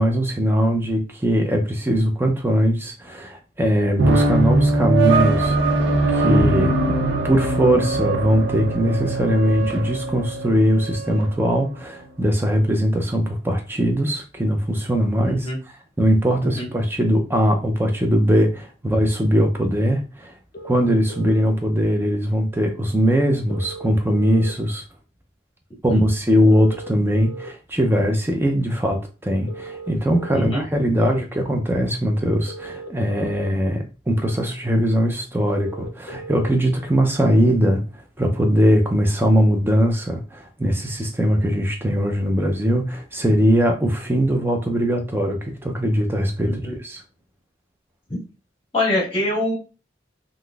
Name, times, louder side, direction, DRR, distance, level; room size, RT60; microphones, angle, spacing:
voice 1, 0.0-5.8 6.1-6.8 7.2-15.5 16.0-20.3 20.6-24.8 25.8-37.8 38.2-47.0, equal, 10° right, 0.4 m, -20 dB
sound 1, 4.0-11.3, right 2 dB, 75° right, 0.5 m, -21 dB
voice 2, 15.2-15.6 16.4-16.7 25.9-26.0 30.3-30.9 46.5-46.8 48.7-49.5, left 1 dB, 25° left, 1.4 m, -25 dB
sound 2, 20.5-21.5 23.5-24.5 26.5-27.5 29.5-30.5 32.5-33.5 35.5-36.5, right 2 dB, 55° left, 0.6 m, -37 dB
3.6 x 2.5 x 2.3 m
head